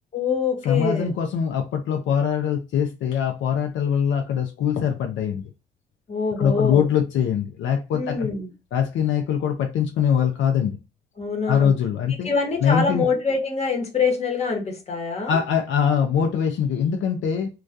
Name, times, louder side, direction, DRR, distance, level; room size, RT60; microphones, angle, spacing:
voice 1, 0.1-1.1 6.1-6.8 7.9-8.5 11.2-11.7 12.2-15.4, left 5 dB, 35° left, 1.0 m, -25 dB
voice 2, 0.6-5.4 6.4-8.3 8.7-10.7 11.5-12.3 12.6-13.1 15.3-17.5, left 8 dB, 75° left, 0.5 m, -22 dB
2.2 x 2.2 x 2.5 m
cardioid pair, 90°, 20 cm